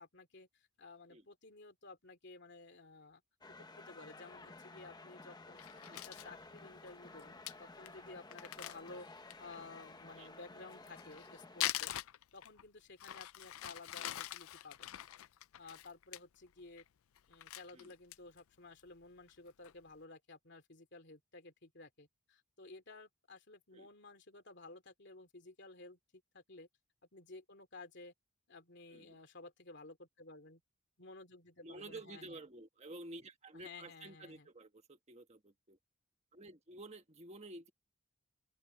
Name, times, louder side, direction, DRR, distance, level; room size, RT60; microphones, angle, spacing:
voice 1, 0.0-3.2 3.5-5.6 6.1-9.1 9.4-11.9 12.3-14.9 15.6-16.8 17.3-26.0 26.3-26.7 27.1-28.1 28.5-30.6 31.0-32.4 33.5-34.5, left 3 dB, 50° left, 2.8 m, -54 dB
sound 1, 3.4-11.7, left 3 dB, 20° left, 1.0 m, -54 dB
Crumpling crinkling, 5.6-6.3 6.9-7.0 7.2-7.3 7.5-7.6 7.9-8.0 8.3-9.6 10.7-12.6 13.0-16.2 16.6-16.9 17.2-18.4 18.8-18.9 19.3-19.7, left 14 dB, 75° left, 0.4 m, -43 dB
voice 2, 31.6-35.8 36.3-37.7, right 2 dB, 30° right, 1.4 m, -51 dB
open air
head